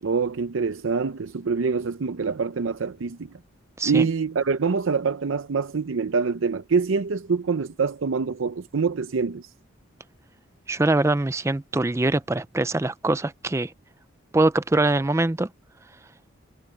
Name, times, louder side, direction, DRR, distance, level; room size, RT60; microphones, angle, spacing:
voice 1, 0.0-3.3 3.8-9.5, right 5 dB, 80° right, 0.6 m, -25 dB
voice 2, 10.7-13.7 14.3-15.5, right 2 dB, 15° right, 0.4 m, -23 dB
head